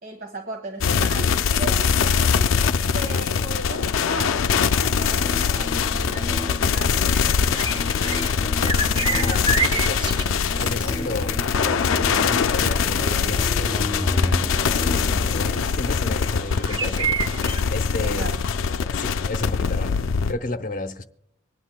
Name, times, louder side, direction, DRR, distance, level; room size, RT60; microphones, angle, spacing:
voice 1, 0.0-7.2 18.0-18.4, right 2 dB, 50° right, 1.4 m, -36 dB
sound 1, 0.8-20.3, left 6 dB, 80° left, 0.4 m, -23 dB
sound 2, 3.9-15.8, left 1 dB, 15° left, 2.5 m, -33 dB
sound 3, 7.1-17.6, right 3 dB, 25° right, 0.6 m, -31 dB
voice 2, 9.0-10.0 10.6-17.1 17.7-18.3 18.9-20.0 20.3-21.0, left 2 dB, 45° left, 0.8 m, -33 dB
24.5 x 9.7 x 2.2 m
head